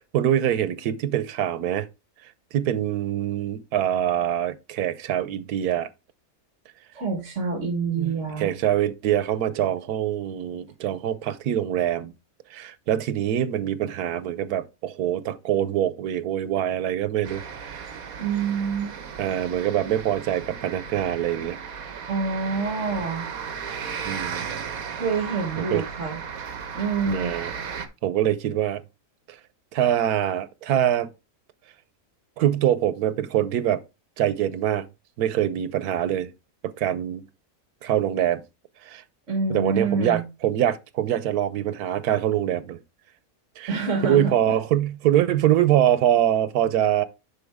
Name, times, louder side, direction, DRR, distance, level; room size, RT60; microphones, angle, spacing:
voice 1, 0.1-1.9 2.5-5.9 8.0-12.1 12.5-17.9 19.2-21.6 24.0-24.6 25.6-25.9 27.1-28.8 29.3-29.4 29.7-31.1 32.4-33.8 34.2-34.9 35.2-36.3 36.6-37.3 37.8-38.4 38.8-39.0 39.5-42.8 43.6-43.8 44.0-47.0, right 11 dB, 85° right, 1.2 m, -24 dB
voice 2, 6.9-8.5 18.2-18.9 22.1-23.3 25.0-26.2 26.7-27.3 39.3-40.2 43.7-44.3, right 4 dB, 55° right, 1.9 m, -26 dB
sound 1, 17.2-27.9, right 6 dB, 70° right, 1.5 m, -35 dB
10.5 x 4.2 x 3.5 m
omnidirectional pair, 1.6 m